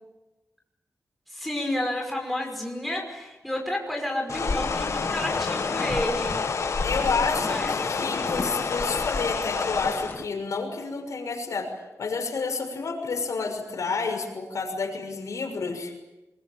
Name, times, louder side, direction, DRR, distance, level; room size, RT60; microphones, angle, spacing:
voice 1, 1.3-6.4 7.5-7.7, left 1 dB, ahead, 0 dB, 5.8 m, -30 dB
sound 1, 4.3-10.1, left 5 dB, 65° left, 1.8 m, -29 dB
sound 2, 4.5-10.2, left 3 dB, 35° left, 1.5 m, -34 dB
voice 2, 6.8-11.7 12.0-15.9, left 4 dB, 80° left, 3 dB, 6.2 m, -30 dB
26.0 x 23.0 x 9.1 m, 1.0 s
wide cardioid pair, 170°, 5 cm